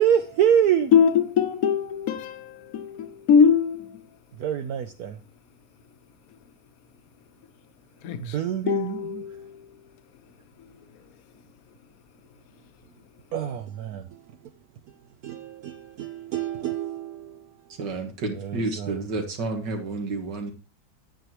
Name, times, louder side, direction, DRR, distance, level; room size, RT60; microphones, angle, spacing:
voice 1, 0.0-0.9 4.3-5.2 8.2-9.2 13.3-14.5 14.9-17.8 18.3-19.0, right 9 dB, 65° right, 1.0 m, -27 dB
voice 2, 0.9-4.0 8.0-8.3 8.7-9.6, left 7 dB, 60° left, 1.2 m, -22 dB
voice 3, 17.7-20.5, right 3 dB, 85° right, 2.3 m, -30 dB
9.7 x 9.0 x 3.0 m
omnidirectional pair, 1.9 m